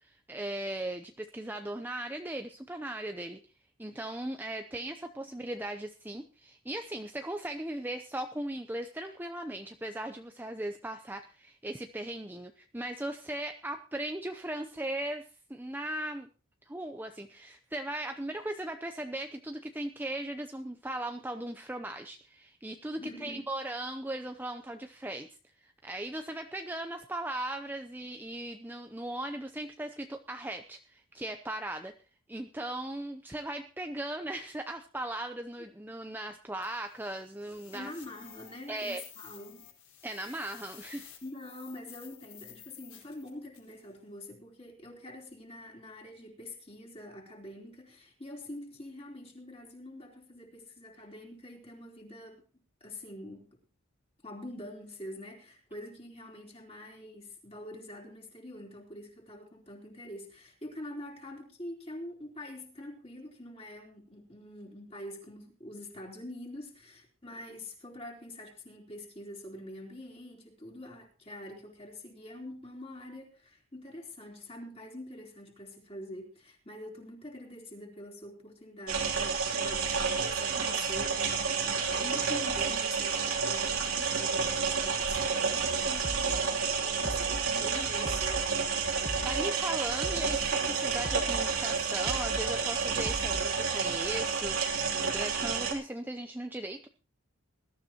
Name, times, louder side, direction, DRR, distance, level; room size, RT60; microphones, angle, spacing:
voice 1, 0.0-3.4 3.8-16.3 16.7-25.3 25.6-31.9 32.3-37.9 38.7-39.0 40.0-41.1 89.2-96.9, right 1 dB, 10° right, 5 dB, 0.6 m, -38 dB
voice 2, 23.0-23.5 37.7-39.7 40.2-40.4 41.2-52.4 52.8-53.5 54.2-88.5, left 1 dB, 25° left, 0 dB, 3.8 m, -45 dB
sound 1, 36.6-43.8, left 10 dB, 75° left, 5.1 m, -53 dB
sound 2, 78.9-95.7, right 5 dB, 80° right, 3.1 m, -30 dB
sound 3, 86.0-86.4 87.0-87.4 88.0-88.4 89.0-89.4 90.0-90.4 91.0-91.4 92.1-92.5 93.1-93.5, right 1 dB, 35° right, 1.3 m, -38 dB
20.5 x 13.0 x 3.0 m, 0.34 s
head